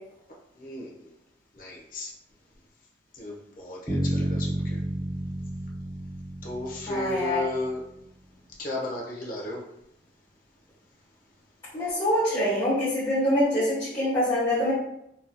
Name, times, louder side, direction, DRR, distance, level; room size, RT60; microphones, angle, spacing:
voice 1, 0.6-1.1 1.5-2.1 3.1-4.8 6.4-7.8 8.6-9.6, left 2 dB, 50° left, -2 dB, 0.9 m, -34 dB
Bass guitar, 3.9-7.8, right 1 dB, 5° right, 0.5 m, -31 dB
voice 2, 6.9-7.4 11.7-14.7, left 1 dB, 25° left, -12 dB, 1.1 m, -25 dB
4.0 x 2.8 x 2.2 m, 0.78 s
head